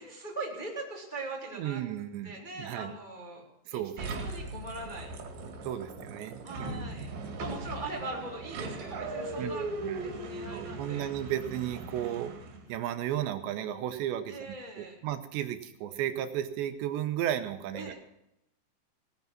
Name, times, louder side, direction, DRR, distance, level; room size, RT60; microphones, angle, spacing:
voice 1, 0.0-1.8 2.2-3.4 3.7-5.1 6.4-7.1 7.4-9.7 10.0-11.0 14.3-15.0 17.7-17.9, right 2 dB, 15° left, -2 dB, 1.9 m, -41 dB
voice 2, 1.5-2.9 3.7-4.0 5.6-7.4 9.4-9.5 9.8-10.0 10.5-12.3 12.7-17.9, right 11 dB, 80° right, 9 dB, 3.1 m, -34 dB
sound 1, 4.0-12.7, right 2 dB, 60° right, 3.8 m, -39 dB
18.0 x 9.5 x 6.0 m, 0.83 s
omnidirectional pair, 5.3 m